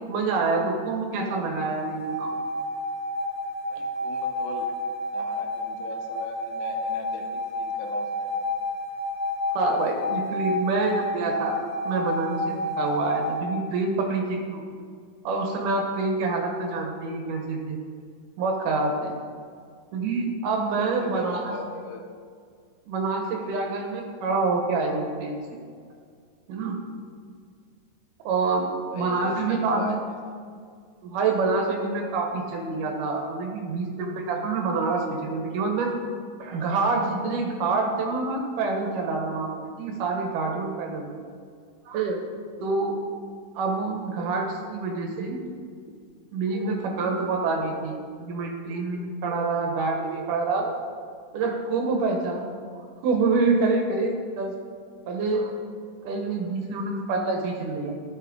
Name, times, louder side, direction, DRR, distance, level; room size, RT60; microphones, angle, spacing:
voice 1, 0.1-2.3 9.5-14.6 15.2-17.8 18.4-19.1 19.9-21.5 22.8-25.6 26.5-26.8 28.2-30.0 31.0-35.9 36.4-41.1 41.9-42.2 42.6-43.0 43.5-45.4 46.3-50.8 51.3-52.4 53.0-54.6 55.1-55.5 56.0-57.9, right 3 dB, 75° right, 2 dB, 2.6 m, -27 dB
sound 1, 1.7-13.4, left 1 dB, 20° right, 2.0 m, -30 dB
voice 2, 3.7-4.7 5.1-8.6 20.7-22.0 23.5-23.6 28.9-30.0, left 3 dB, 75° left, 3 dB, 2.1 m, -39 dB
12.5 x 6.6 x 3.7 m, 2.1 s
omnidirectional pair, 3.7 m